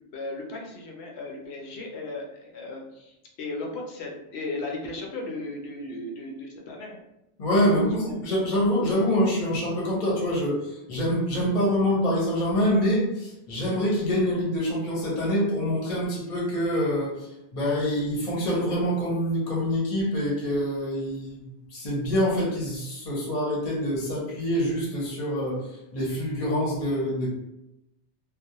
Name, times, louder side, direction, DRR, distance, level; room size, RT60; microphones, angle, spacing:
voice 1, 0.1-7.0 8.0-8.1, left 2 dB, 70° left, 0 dB, 0.8 m, -36 dB
voice 2, 7.4-21.4 21.7-25.6 25.9-27.3, equal, 40° left, -5 dB, 0.7 m, -25 dB
2.3 x 2.0 x 2.8 m, 0.88 s
omnidirectional pair, 1.2 m